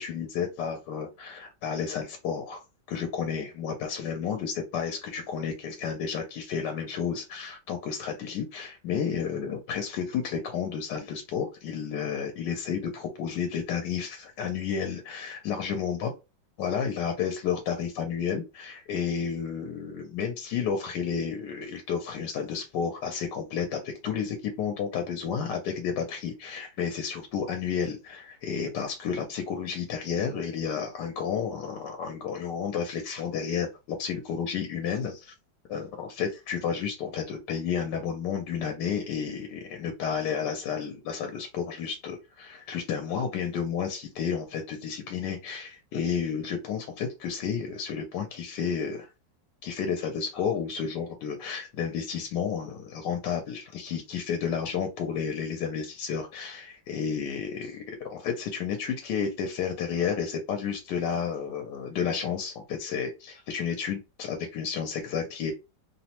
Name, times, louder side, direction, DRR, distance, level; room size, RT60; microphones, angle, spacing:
voice 1, 0.0-2.6 2.9-16.1 16.6-35.3 35.7-49.1 49.6-65.5, left 7 dB, 80° left, 1.2 m, -31 dB
3.0 x 2.0 x 2.8 m
omnidirectional pair, 1.9 m